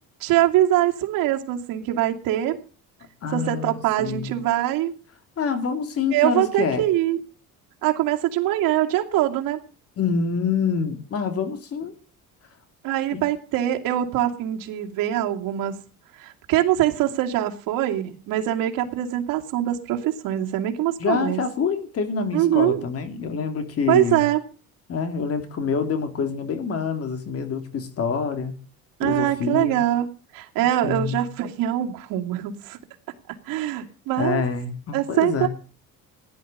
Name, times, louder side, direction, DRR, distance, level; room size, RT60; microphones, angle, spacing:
voice 1, 0.2-2.6 3.3-4.9 6.1-7.2 7.8-9.6 12.8-15.8 16.2-21.4 22.3-22.8 23.9-24.4 29.0-30.1 30.3-32.8 33.5-34.4 34.9-35.5, right 13 dB, 80° right, 2.5 m, -23 dB
voice 2, 3.2-4.4 5.4-6.8 10.0-11.9 13.1-13.2 21.0-24.2 24.9-28.5 29.0-29.8 30.8-31.2 34.2-35.5, left 5 dB, 45° left, 2.7 m, -26 dB
16.0 x 11.0 x 6.7 m
cardioid pair, 145°, 33 cm